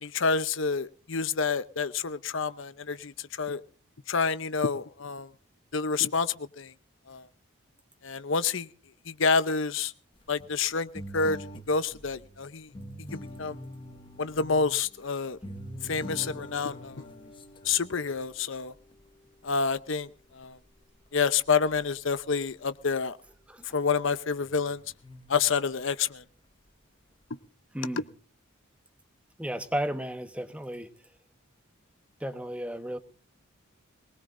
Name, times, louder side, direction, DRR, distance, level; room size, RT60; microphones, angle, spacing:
voice 1, 0.0-3.6 4.1-5.3 5.7-6.7 7.1-7.2 8.0-8.7 9.1-9.9 10.3-11.4 11.7-12.7 13.1-13.6 14.2-15.4 15.8-17.0 17.6-18.7 19.4-20.6 21.1-23.2 23.7-24.8 25.3-26.2, left 5 dB, 65° left, 0.8 m, -28 dB
sound 1, 10.2-20.0 20.4-20.7 21.2-22.2 22.5-22.7 24.3-25.5, equal, 25° left, 1.3 m, -45 dB
voice 2, 29.4-30.9 32.2-33.0, right 1 dB, 5° right, 1.1 m, -33 dB
22.0 x 20.0 x 2.6 m
head